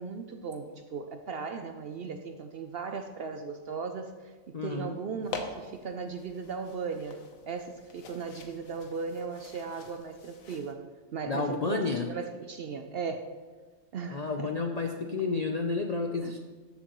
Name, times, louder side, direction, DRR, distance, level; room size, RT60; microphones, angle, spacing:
voice 1, 0.0-7.2 7.4-10.8 11.1-13.3 13.9-14.7 15.0-15.1 16.2-16.4, right 5 dB, 60° right, 6 dB, 0.6 m, -37 dB
voice 2, 4.5-5.0 11.3-12.1 14.1-16.4, left 4 dB, 55° left, 4 dB, 0.4 m, -31 dB
sound 1, 5.2-10.7, left 4 dB, 80° left, 1.3 m, -45 dB
14.0 x 7.2 x 3.0 m, 1.4 s
omnidirectional pair, 1.4 m